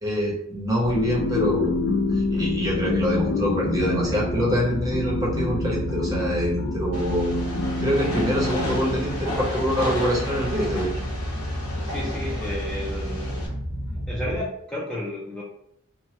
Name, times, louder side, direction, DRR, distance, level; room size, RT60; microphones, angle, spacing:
voice 1, 0.0-1.8 2.1-10.9, equal, 15° right, -5 dB, 0.8 m, -25 dB
sound 1, 0.8-14.4, equal, 60° right, 0.9 m, -32 dB
sound 2, 0.9-9.7, left 2 dB, 55° left, 0.4 m, -27 dB
Train, 6.9-13.5, left 1 dB, 90° left, 1.2 m, -33 dB
voice 2, 11.8-13.4 14.1-15.4, left 1 dB, 5° left, -8 dB, 0.5 m, -32 dB
2.9 x 2.2 x 3.1 m, 0.72 s
head